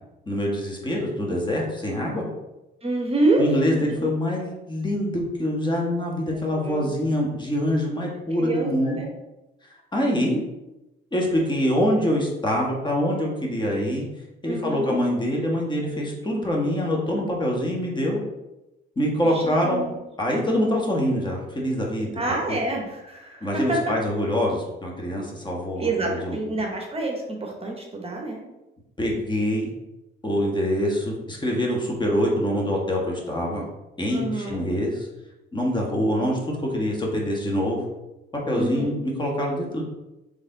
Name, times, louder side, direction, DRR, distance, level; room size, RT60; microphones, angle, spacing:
voice 1, 0.3-2.2 3.4-9.0 9.9-10.4 11.1-14.0 14.4-18.2 19.0-19.8 20.2-22.2 22.5-22.6 23.4-26.4 29.0-29.7 30.2-33.6 34.0-35.1 35.5-37.8 38.5-39.8, equal, 20° left, -1 dB, 1.3 m, -25 dB
voice 2, 2.8-3.5 3.7-4.1 6.3-6.9 8.3-9.1 14.5-14.9 19.2-19.9 22.2-23.9 25.8-28.4 34.1-34.6 38.5-39.0, right 2 dB, 30° right, 0 dB, 1.0 m, -27 dB
4.0 x 3.4 x 3.9 m, 0.97 s
cardioid pair, 90°, 20 cm